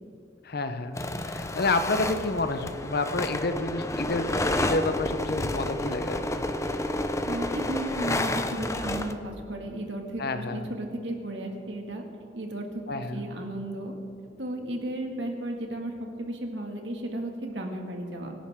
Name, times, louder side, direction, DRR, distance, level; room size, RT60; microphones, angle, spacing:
voice 1, 0.4-6.5 10.2-10.7 12.9-13.2, left 2 dB, 60° left, 9 dB, 0.9 m, -29 dB
sound 1, 0.9-9.1, left 1 dB, 15° left, 0.7 m, -30 dB
voice 2, 7.3-12.0 12.3-12.8 13.1-13.9 14.4-15.9 16.2-18.4, right 1 dB, 75° right, 2 dB, 2.1 m, -34 dB
25.0 x 11.5 x 3.7 m, 2.5 s
head